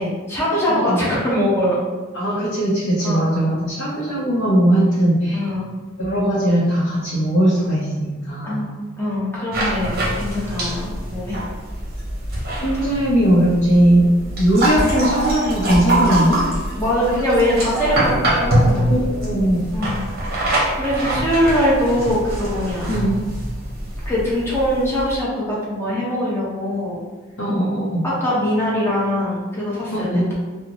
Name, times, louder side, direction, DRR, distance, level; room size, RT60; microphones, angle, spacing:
voice 1, 0.0-1.8 3.0-3.6 5.3-5.7 8.4-11.4 16.8-18.9 19.7-20.0 20.3-22.9 24.0-27.0 28.0-30.3, equal, 10° left, -7 dB, 0.9 m, -22 dB
voice 2, 0.7-1.0 2.1-5.5 6.0-8.7 12.6-14.1 14.4-16.5 18.9-19.6 22.9-23.2 27.4-28.1 29.9-30.3, right 1 dB, 80° left, -8 dB, 0.7 m, -19 dB
sound 1, 9.5-25.2, right 1 dB, 45° right, 0.8 m, -24 dB
3.7 x 2.1 x 2.9 m, 1.3 s
head